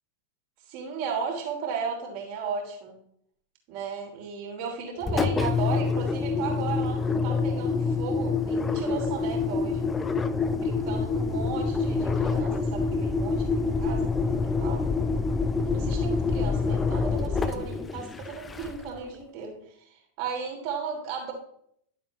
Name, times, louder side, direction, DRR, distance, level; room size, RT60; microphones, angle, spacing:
voice 1, 0.7-3.0 3.7-9.9 10.5-14.9 15.7-21.3, right 6 dB, 45° right, 0 dB, 3.2 m, -35 dB
Engine, 5.0-19.0, left 4 dB, 15° left, 0.6 m, -26 dB
11.5 x 7.3 x 3.2 m, 0.70 s
figure-of-eight pair, 90°, 0 cm